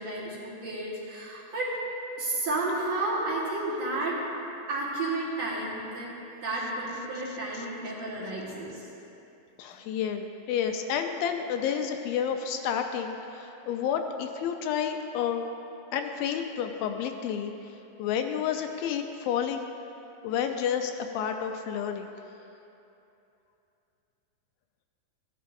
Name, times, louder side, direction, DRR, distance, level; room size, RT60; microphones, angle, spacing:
voice 1, 0.0-1.7 2.2-4.2 4.7-6.1 6.4-8.9, right 2 dB, 55° right, -7 dB, 2.4 m, -32 dB
voice 2, 9.6-15.5 15.9-17.5 18.0-19.7 20.2-22.1, left 8 dB, 80° left, 5 dB, 2.3 m, -30 dB
15.5 x 11.0 x 2.6 m, 2.8 s
omnidirectional pair, 4.3 m